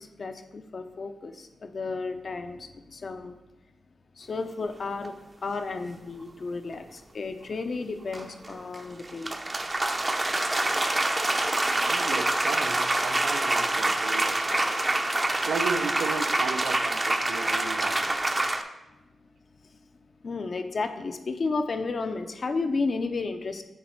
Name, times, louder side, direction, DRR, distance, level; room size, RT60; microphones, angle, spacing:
voice 1, 0.0-3.4 4.2-9.4 20.2-23.6, left 3 dB, 50° left, 7 dB, 0.6 m, -32 dB
sound 1, 5.0-5.1 8.1-18.6, right 2 dB, 25° right, 0.5 m, -26 dB
voice 2, 11.7-14.7 15.3-18.3, right 5 dB, 85° right, 8 dB, 0.4 m, -35 dB
8.2 x 3.1 x 4.5 m, 1.0 s
cardioid pair, 75°, 0 cm